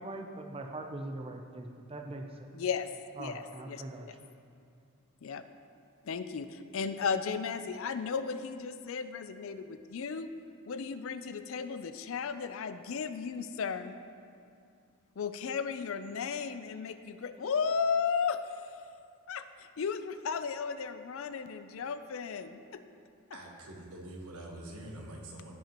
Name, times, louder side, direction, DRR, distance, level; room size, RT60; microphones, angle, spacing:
voice 1, 0.0-2.6 3.2-4.3, right 2 dB, 25° right, 3 dB, 0.5 m, -42 dB
voice 2, 2.5-2.9 3.2-3.4 3.7-4.1 5.2-5.4 6.0-10.3 10.7-14.0 15.2-18.4 19.3-22.8, left 6 dB, 65° left, 11 dB, 0.4 m, -35 dB
voice 3, 23.3-25.6, right 1 dB, 85° right, 0 dB, 1.3 m, -45 dB
15.5 x 5.6 x 2.9 m, 2.4 s
head